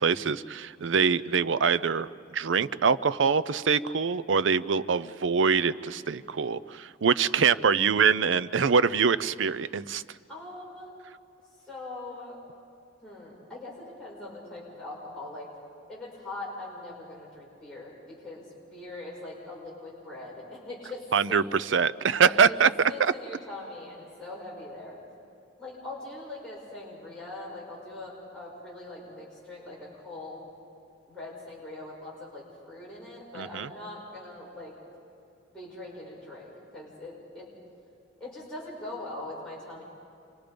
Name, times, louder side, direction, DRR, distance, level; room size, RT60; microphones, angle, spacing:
voice 1, 0.0-10.0 21.1-22.7 23.0-23.1 33.3-33.7, right 6 dB, 70° right, 16 dB, 0.6 m, -24 dB
voice 2, 10.3-10.9 11.7-12.4 13.0-15.5 15.9-18.4 18.7-21.4 22.2-22.6 22.9-25.0 25.6-30.5 31.1-34.7 35.5-37.5 38.2-39.8, left 2 dB, 5° left, -8 dB, 6.5 m, -41 dB
30.0 x 25.5 x 5.2 m, 2.5 s
head